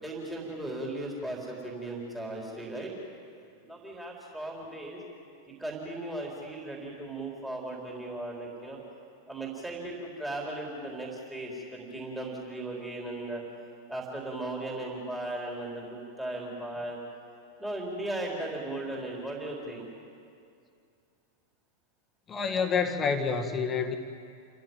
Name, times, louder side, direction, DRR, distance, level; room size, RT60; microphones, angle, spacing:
voice 1, 0.0-2.9 3.6-5.0 5.6-8.8 9.3-13.4 13.9-17.0 17.6-19.9, right 1 dB, 5° right, -3 dB, 4.0 m, -37 dB
voice 2, 22.3-24.0, left 5 dB, 20° left, 6 dB, 1.7 m, -28 dB
29.0 x 15.0 x 9.0 m, 2.4 s
figure-of-eight pair, 90°, 0 cm